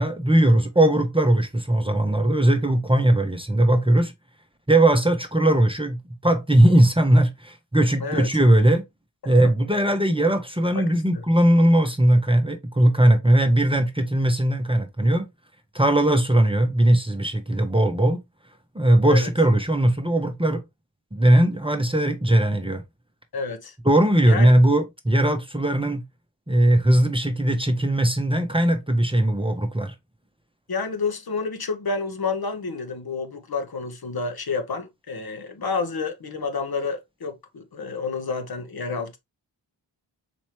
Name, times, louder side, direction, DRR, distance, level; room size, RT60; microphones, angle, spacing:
voice 1, 0.0-4.1 4.7-6.0 6.2-8.8 9.3-15.3 15.7-18.2 18.7-20.6 21.1-22.8 23.8-26.0 26.5-29.9, right 1 dB, 10° right, 0.8 m, -19 dB
voice 2, 10.7-11.2 19.1-19.3 23.3-23.8 24.3-24.5 30.7-39.2, left 4 dB, 50° left, 1.0 m, -29 dB
4.2 x 3.0 x 3.0 m
cardioid pair, 45°, 46 cm